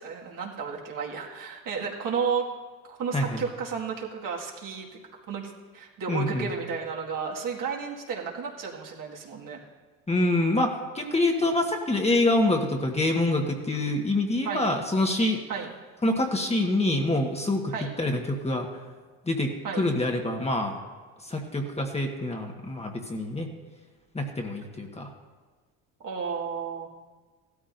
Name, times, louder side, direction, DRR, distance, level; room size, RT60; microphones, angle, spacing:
voice 1, 0.0-2.5 2.8-5.0 5.3-9.6 14.4-14.8 15.5-15.7 17.7-17.9 19.6-19.8 26.0-26.9, right 6 dB, 55° right, -1 dB, 2.1 m, -32 dB
voice 2, 6.1-6.5 10.1-15.4 16.0-18.7 19.3-20.8 21.2-23.5 24.1-25.1, left 2 dB, 15° left, 2 dB, 1.4 m, -26 dB
15.5 x 13.0 x 2.7 m, 1.4 s
supercardioid pair, 80°, 39 cm